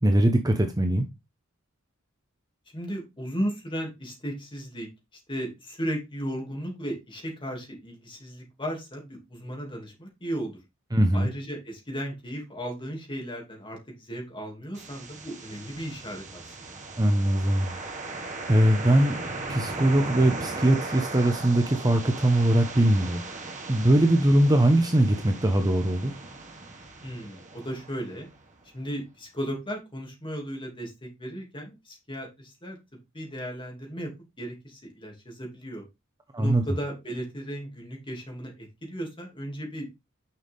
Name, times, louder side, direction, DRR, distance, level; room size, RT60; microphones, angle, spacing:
voice 1, 0.0-1.1 10.9-11.3 17.0-17.7 18.5-19.2 19.5-23.4 23.7-26.1 36.3-36.6, right 1 dB, 20° right, 0.7 m, -21 dB
voice 2, 2.7-4.9 5.3-10.6 11.1-16.7 27.0-28.3 28.7-32.8 33.1-34.1 34.4-35.8 36.4-39.9, equal, 25° left, 2.6 m, -35 dB
sound 1, 14.7-28.6, right 3 dB, 35° right, 1.7 m, -38 dB
6.4 x 5.6 x 3.5 m
head